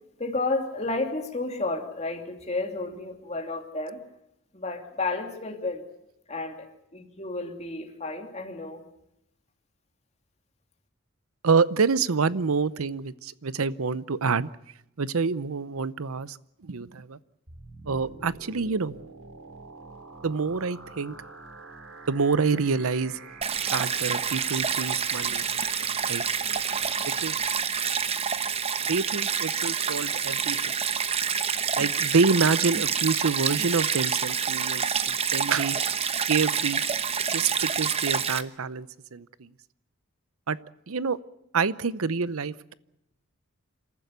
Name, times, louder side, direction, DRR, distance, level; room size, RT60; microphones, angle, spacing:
voice 1, 0.2-4.0 4.5-5.8 6.3-8.9, left 3 dB, 30° left, 4 dB, 2.8 m, -32 dB
voice 2, 11.4-14.5 15.0-16.4 16.6-17.2 17.9-18.9 20.2-21.2 22.1-23.1 23.7-25.4 26.1-26.2 27.0-27.4 28.9-30.6 31.8-35.8 36.3-36.8 37.3-39.5 40.5-40.6 40.9-41.2 41.5-42.7, right 5 dB, 85° right, 17 dB, 0.7 m, -27 dB
sound 1, 17.5-27.5, right 4 dB, 70° right, 3.5 m, -45 dB
Stream, 23.4-38.4, right 7 dB, 30° right, 0.9 m, -27 dB
27.5 x 14.5 x 8.2 m, 0.85 s
head